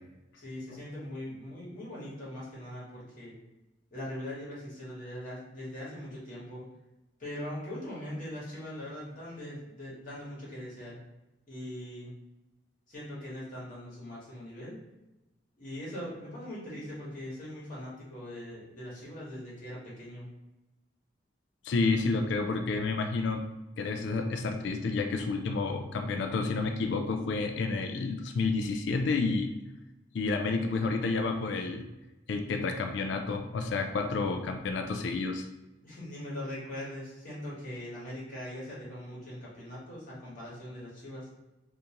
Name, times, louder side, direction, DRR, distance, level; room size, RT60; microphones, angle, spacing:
voice 1, 0.3-3.4 3.9-6.7 7.2-11.0 11.5-12.1 12.9-14.8 15.6-20.3 35.8-41.3, left 1 dB, 45° left, -7 dB, 1.3 m, -41 dB
voice 2, 21.6-23.5 23.8-29.5 30.1-31.8 32.3-35.5, left 3 dB, 70° left, 6 dB, 0.3 m, -30 dB
3.6 x 2.6 x 2.8 m, 0.99 s
head